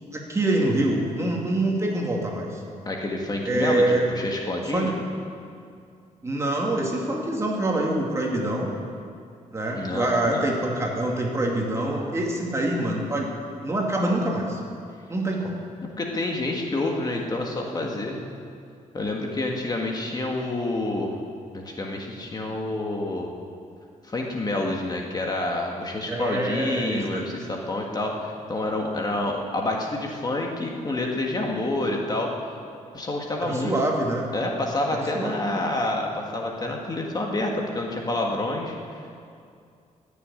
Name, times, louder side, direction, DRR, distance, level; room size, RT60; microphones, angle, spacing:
voice 1, 0.1-2.6 3.4-4.0 4.7-4.9 6.2-8.7 9.5-13.3 13.6-14.6 15.1-15.6 26.1-27.3 33.4-34.2 34.9-35.4, right 1 dB, 20° right, -1 dB, 2.3 m, -25 dB
voice 2, 2.9-4.9 9.7-10.4 16.0-18.2 18.9-21.1 21.5-23.3 24.0-32.3 32.9-33.7 34.3-39.0, left 2 dB, 30° left, 0 dB, 1.6 m, -28 dB
15.0 x 7.0 x 9.9 m, 2.4 s
cardioid pair, 125°, 14 cm